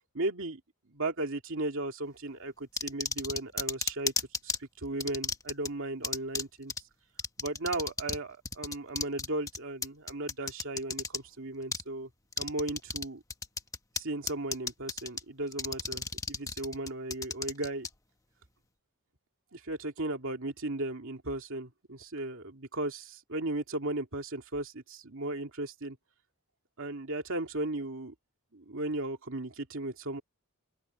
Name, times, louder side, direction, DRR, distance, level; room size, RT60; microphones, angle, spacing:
voice 1, 0.1-0.6 0.9-6.7 7.4-12.1 12.4-13.2 14.0-17.9 19.5-26.0 26.8-28.1 28.5-30.2, right 2 dB, 65° right, 2.7 m, -36 dB
sound 1, 2.8-4.6 5.0-5.7 6.0-6.4 6.7-6.8 7.2-8.2 8.4-11.2 11.7-11.8 12.3-13.0 13.3-14.0 14.3-15.2 15.5-17.9, left 4 dB, 15° left, 1.2 m, -33 dB
open air
head